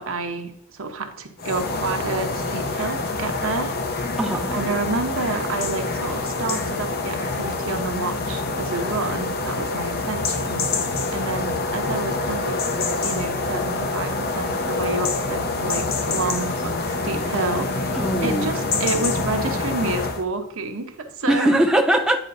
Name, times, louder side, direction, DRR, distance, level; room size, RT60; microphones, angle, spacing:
voice 1, 0.0-4.0 4.5-12.7 13.0-21.6, right 3 dB, 65° right, 5 dB, 0.9 m, -29 dB
sound 1, 1.4-20.2, left 3 dB, 45° left, 0.7 m, -26 dB
voice 2, 4.2-4.6 17.9-18.5 21.3-22.2, right 1 dB, 5° right, 2 dB, 0.3 m, -20 dB
8.9 x 5.1 x 2.6 m, 0.78 s
head